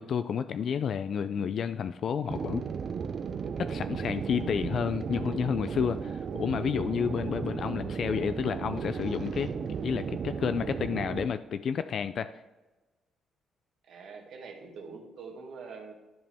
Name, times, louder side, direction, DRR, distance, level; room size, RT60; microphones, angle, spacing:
voice 1, 0.0-2.6 3.6-9.5 9.8-12.3, left 7 dB, 60° left, 11 dB, 0.3 m, -30 dB
sound 1, 2.3-11.3, right 6 dB, 50° right, 0.4 m, -35 dB
voice 2, 13.9-15.9, right 4 dB, 70° right, 2 dB, 1.6 m, -44 dB
11.0 x 5.2 x 3.4 m, 1.2 s
cardioid pair, 90°, 0 cm